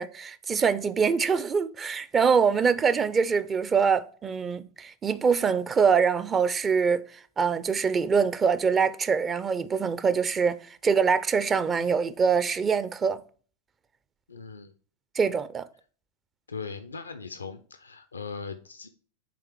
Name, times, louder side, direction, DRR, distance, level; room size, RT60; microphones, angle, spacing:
voice 1, 0.0-7.0 7.4-10.6 10.8-13.2 15.2-15.6, right 6 dB, 20° right, 0.4 m, -24 dB
voice 2, 14.3-14.7 16.5-18.9, left 5 dB, 75° left, 0.4 m, -39 dB
8.4 x 3.4 x 4.8 m
figure-of-eight pair, 90°, 0 cm